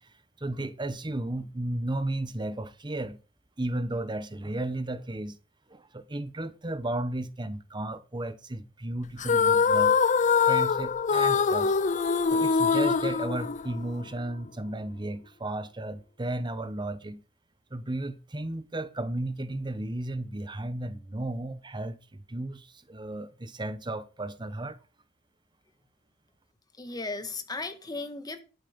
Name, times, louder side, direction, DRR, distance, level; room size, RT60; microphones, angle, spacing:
voice 1, 0.4-3.2 3.6-5.4 5.7-9.9 10.5-11.7 12.3-17.2 17.7-22.0 22.3-24.8, right 1 dB, 25° right, 1.0 m, -34 dB
sound 1, 9.2-14.0, left 5 dB, 40° left, 0.5 m, -24 dB
voice 2, 26.7-28.4, left 3 dB, 20° left, 1.6 m, -36 dB
12.0 x 8.3 x 5.2 m
head